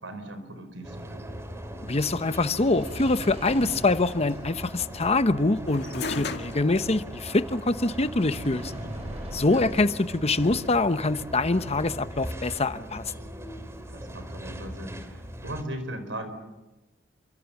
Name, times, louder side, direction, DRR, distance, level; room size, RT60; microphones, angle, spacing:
voice 1, 0.0-1.3 9.4-9.7 13.9-16.4, right 1 dB, 80° right, 4.8 m, -38 dB
sound 1, 0.8-15.6, equal, 15° right, 2.7 m, -40 dB
sound 2, 0.8-13.9, right 1 dB, 35° right, 5.3 m, -44 dB
voice 2, 1.9-8.7 9.3-13.0, left 2 dB, 35° left, 1.0 m, -24 dB
sound 3, 5.6-14.8, left 4 dB, 60° left, 2.0 m, -42 dB
29.0 x 24.5 x 7.2 m
head